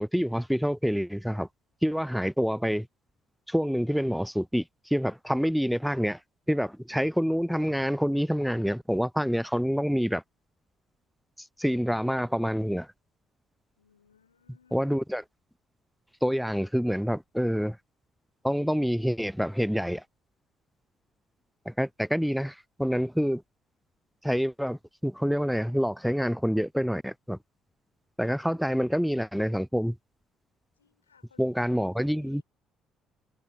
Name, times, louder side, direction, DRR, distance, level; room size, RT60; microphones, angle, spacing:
voice 1, 0.0-1.5 1.8-2.9 3.5-6.2 6.5-10.2 11.4-12.9 14.7-15.2 16.2-17.8 18.4-20.0 21.7-23.4 24.2-27.4 28.2-30.0 31.4-32.4, equal, ahead, 0.3 m, -27 dB
voice 2, 13.8-15.0 30.8-31.5 31.8-32.4, left 7 dB, 85° left, 6.1 m, -63 dB
figure-of-eight pair, 50°, 0 cm